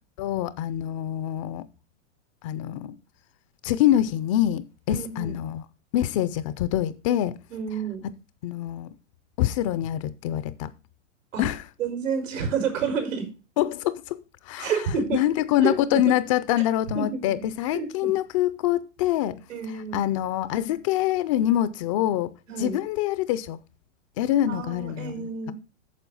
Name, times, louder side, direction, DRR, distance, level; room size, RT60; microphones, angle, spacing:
voice 1, 0.2-1.7 2.4-3.0 3.6-5.6 5.9-7.4 8.4-8.9 9.4-10.7 11.4-11.6 13.6-19.4 19.9-22.3 22.6-23.6 24.2-25.5, left 12 dB, 30° left, 0.4 m, -25 dB
voice 2, 4.9-5.4 7.5-8.0 11.3-11.4 11.8-13.3 14.6-15.2 15.6-16.0 16.9-17.3 17.7-18.1 19.5-20.0 22.5-22.8 24.5-25.5, right 6 dB, 85° right, 4.5 m, -29 dB
9.2 x 6.7 x 5.4 m
hypercardioid pair, 145°, 37 cm